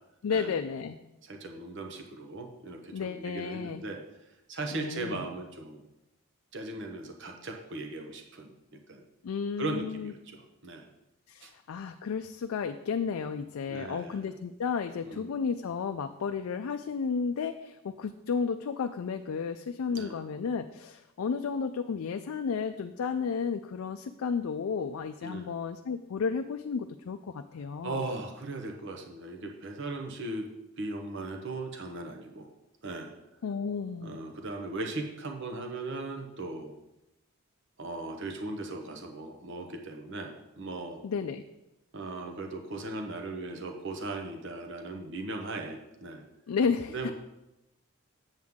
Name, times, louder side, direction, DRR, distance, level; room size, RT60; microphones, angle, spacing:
voice 1, 0.2-1.0 2.9-3.8 4.7-5.3 9.2-10.1 11.3-28.0 33.4-34.3 41.0-41.4 46.5-47.1, left 5 dB, 75° left, 7 dB, 0.4 m, -32 dB
voice 2, 1.2-4.0 4.5-5.8 6.5-9.0 9.6-10.9 11.4-11.5 13.7-14.3 15.0-15.4 19.9-20.1 25.2-25.5 27.8-30.5 30.8-32.5 32.8-33.1 34.0-36.7 37.8-41.0 41.9-46.2 46.9-47.1, right 2 dB, 55° right, 4 dB, 0.9 m, -38 dB
7.8 x 7.3 x 3.6 m, 0.92 s
head